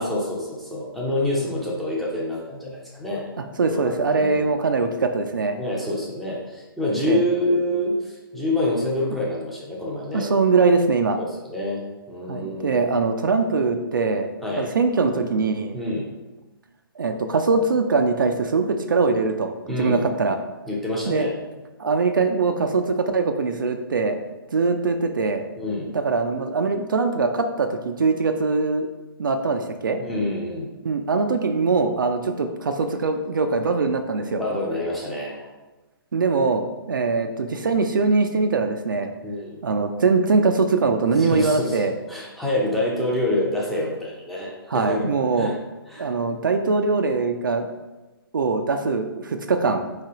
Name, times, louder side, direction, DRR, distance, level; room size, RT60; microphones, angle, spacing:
voice 1, 0.0-3.3 3.7-4.5 5.6-10.3 11.2-11.8 12.1-12.9 14.4-14.7 15.7-16.1 19.7-20.0 20.7-21.3 25.6-25.9 30.0-30.7 34.2-35.5 39.2-39.6 41.2-45.5 45.9-46.1, left 1 dB, ahead, -6 dB, 0.6 m, -27 dB
voice 2, 3.6-5.6 7.1-7.2 10.1-11.2 12.3-14.3 14.6-15.8 17.0-19.5 19.8-20.4 21.1-21.3 21.8-24.2 24.5-25.4 25.9-28.9 29.2-30.0 30.8-34.4 36.1-39.1 39.6-41.9 44.7-45.5 46.0-47.7 48.3-49.8, right 4 dB, 55° right, 6 dB, 0.4 m, -22 dB
3.9 x 3.3 x 3.6 m, 1.1 s
figure-of-eight pair, 135°, 13 cm